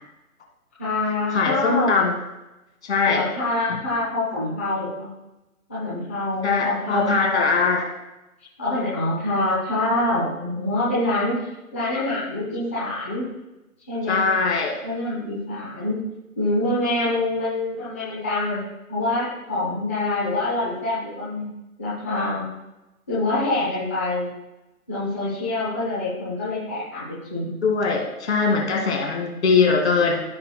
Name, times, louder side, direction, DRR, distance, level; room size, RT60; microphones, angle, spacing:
voice 1, 0.8-2.0 3.1-5.1 5.7-7.1 8.6-11.4 11.7-13.3 13.9-14.2 14.8-16.0 16.4-18.6 18.9-21.5 21.8-22.5 23.1-24.3 24.9-27.6, left 2 dB, 10° left, -10 dB, 0.7 m, -25 dB
voice 2, 1.3-2.2 2.8-3.3 3.7-3.8 6.4-7.9 14.1-14.7 27.6-30.2, left 4 dB, 45° left, 1 dB, 2.2 m, -21 dB
15.5 x 5.2 x 2.2 m, 0.99 s
hypercardioid pair, 160°, 44 cm